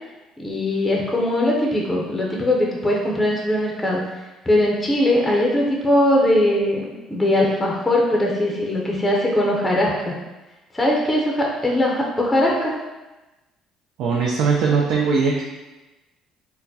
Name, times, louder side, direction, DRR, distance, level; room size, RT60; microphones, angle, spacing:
voice 1, 0.4-4.0 4.5-10.1 10.7-12.7, left 1 dB, 15° left, -2 dB, 0.6 m, -20 dB
voice 2, 14.0-15.4, right 5 dB, 70° right, -2 dB, 0.4 m, -20 dB
4.2 x 2.1 x 2.7 m, 1.1 s
cardioid pair, 95°, 0 cm